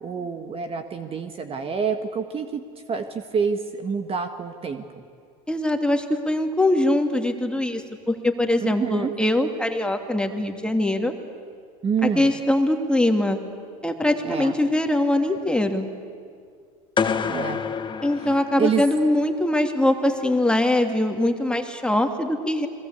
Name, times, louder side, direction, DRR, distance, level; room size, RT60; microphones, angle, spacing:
voice 1, 0.0-2.6 2.9-5.0 8.6-9.1 11.8-12.3 14.2-14.6 17.3-17.6 18.6-18.8, right 6 dB, 30° right, 7 dB, 1.7 m, -27 dB
voice 2, 5.5-11.1 12.0-13.4 13.8-15.9 18.0-22.7, left 1 dB, 5° left, 4 dB, 2.6 m, -22 dB
sound 1, 17.0-19.1, left 6 dB, 25° left, 1.4 m, -27 dB
30.0 x 22.0 x 8.4 m, 2.2 s
supercardioid pair, 100°, 18 cm